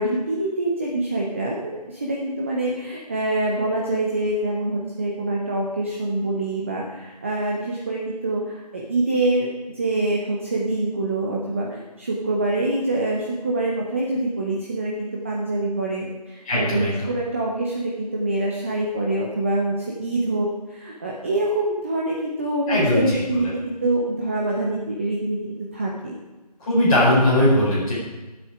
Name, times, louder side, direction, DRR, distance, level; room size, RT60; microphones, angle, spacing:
voice 1, 0.0-9.5 9.7-26.1, right 2 dB, 20° right, -2 dB, 0.9 m, -25 dB
voice 2, 16.4-17.1 22.7-23.2 26.6-27.9, left 1 dB, 10° left, -9 dB, 4.5 m, -19 dB
20.0 x 7.9 x 5.0 m, 1.2 s
figure-of-eight pair, 165°, 21 cm